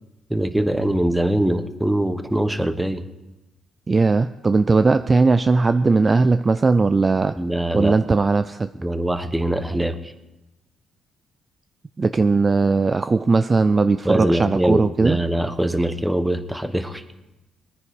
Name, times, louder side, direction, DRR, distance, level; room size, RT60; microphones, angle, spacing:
voice 1, 0.3-3.0 7.4-7.9 8.8-10.1 14.0-17.0, right 1 dB, 5° right, 10 dB, 1.0 m, -22 dB
voice 2, 3.9-7.4 7.7-8.7 12.0-15.2, right 3 dB, 30° right, 11 dB, 0.4 m, -18 dB
20.5 x 9.7 x 4.8 m, 1.0 s
cardioid pair, 90°, 0 cm